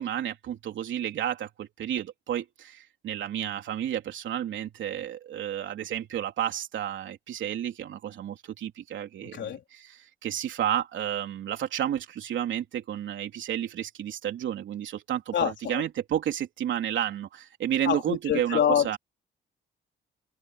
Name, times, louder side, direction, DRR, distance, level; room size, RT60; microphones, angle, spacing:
voice 1, 0.0-19.0, right 10 dB, 70° right, 3.5 m, -31 dB
voice 2, 9.2-9.6 15.3-15.8 17.8-19.0, left 9 dB, 65° left, 4.2 m, -26 dB
cardioid pair, 90°, 20 cm